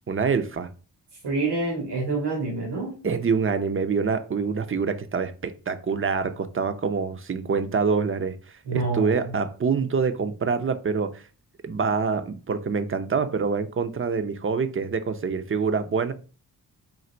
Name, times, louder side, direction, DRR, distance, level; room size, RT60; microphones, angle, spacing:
voice 1, 0.1-0.7 3.0-8.4 8.7-11.2 11.6-16.1, right 5 dB, 30° right, 0.6 m, -26 dB
voice 2, 1.2-2.9 8.7-9.2, right 3 dB, 80° right, 1.5 m, -27 dB
3.9 x 2.4 x 4.3 m
cardioid pair, 50°, 40 cm